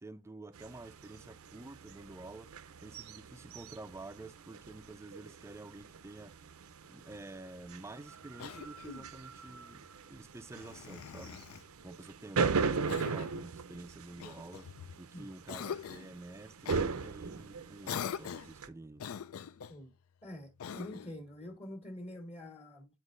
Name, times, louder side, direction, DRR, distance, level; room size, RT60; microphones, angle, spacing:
voice 1, 0.0-2.6 2.8-6.4 6.9-11.4 11.8-19.1, right 2 dB, 15° right, 0.4 m, -49 dB
sound 1, 0.5-18.7, right 5 dB, 90° right, 0.6 m, -39 dB
Cough, 8.4-9.2 10.5-11.7 12.9-13.4 14.2-15.0 15.5-16.1 16.6-16.9 17.9-18.6 19.0-19.8 20.6-21.2, left 8 dB, 75° left, 0.4 m, -42 dB
voice 2, 20.2-22.9, left 1 dB, 30° left, 1.4 m, -46 dB
9.7 x 4.5 x 2.5 m
head